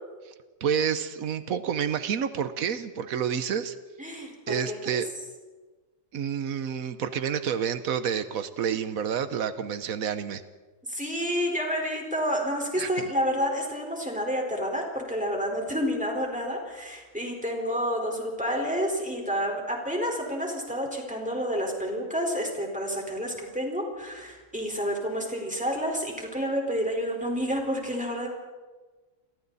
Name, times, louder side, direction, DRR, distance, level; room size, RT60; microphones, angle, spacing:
voice 1, 0.6-3.8 4.5-5.1 6.1-10.4 12.8-12.9, right 7 dB, 90° right, 11 dB, 1.4 m, -29 dB
voice 2, 4.0-5.0 10.9-28.3, equal, 5° right, 0 dB, 4.4 m, -29 dB
29.0 x 23.5 x 4.1 m, 1.3 s
omnidirectional pair, 1.4 m